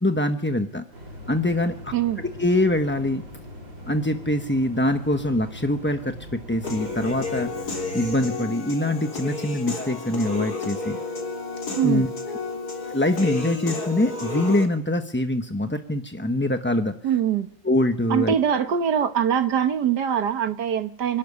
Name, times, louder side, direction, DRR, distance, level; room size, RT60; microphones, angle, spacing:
voice 1, 0.0-0.8 1.3-3.2 3.9-7.5 7.9-11.0 11.8-12.1 12.5-16.9 17.6-18.3, left 1 dB, 10° left, 0.7 m, -24 dB
sound 1, 0.9-8.3, left 1 dB, 85° right, 6.0 m, -41 dB
voice 2, 1.9-2.2 11.8-12.1 17.0-17.5 18.1-21.2, right 8 dB, 65° right, 1.8 m, -23 dB
Human voice / Piano, 6.6-14.6, left 3 dB, 55° left, 4.3 m, -31 dB
25.0 x 12.5 x 9.7 m
omnidirectional pair, 2.0 m